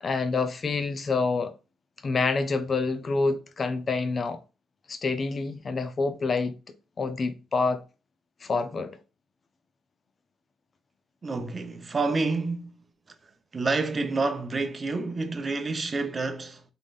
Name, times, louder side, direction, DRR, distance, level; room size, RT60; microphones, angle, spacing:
voice 1, 0.0-1.5 2.0-4.4 4.9-7.8 8.4-9.0, left 4 dB, 40° left, 0.6 m, -27 dB
voice 2, 11.2-12.8 13.5-16.6, right 3 dB, 30° right, 0.7 m, -28 dB
3.7 x 3.6 x 2.4 m
cardioid pair, 90°, 0 cm